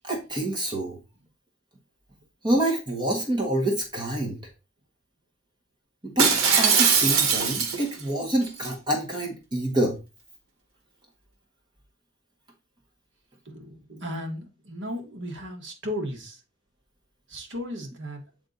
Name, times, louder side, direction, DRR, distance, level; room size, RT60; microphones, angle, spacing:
voice 1, 0.0-0.9 2.4-4.4 6.0-10.0, right 1 dB, 20° right, 1.3 m, -27 dB
Shatter, 6.2-8.0 8.4-8.7, right 6 dB, 85° right, 1.3 m, -21 dB
voice 2, 13.4-16.4 17.3-18.2, equal, 60° right, 1.7 m, -35 dB
8.3 x 3.5 x 3.9 m
head